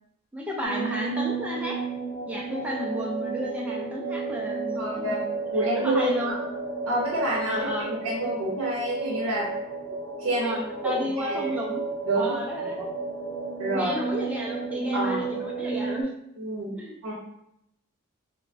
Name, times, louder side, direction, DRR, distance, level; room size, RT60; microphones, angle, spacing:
voice 1, 0.3-1.8 2.3-5.1 5.5-6.3 7.5-7.9 10.4-11.8 12.2-12.9 13.7-16.1 16.7-17.0, equal, 5° right, -3 dB, 0.3 m, -33 dB
sound 1, 0.6-16.0, right 4 dB, 60° left, 0.6 m, -32 dB
voice 2, 4.7-6.4 6.9-9.5 10.2-10.6 10.8-11.5 12.0-12.3 13.6-14.0 14.9-15.4 16.4-16.7 17.0-17.1, right 1 dB, 90° right, -5 dB, 0.6 m, -28 dB
3.1 x 2.1 x 2.5 m, 0.76 s
head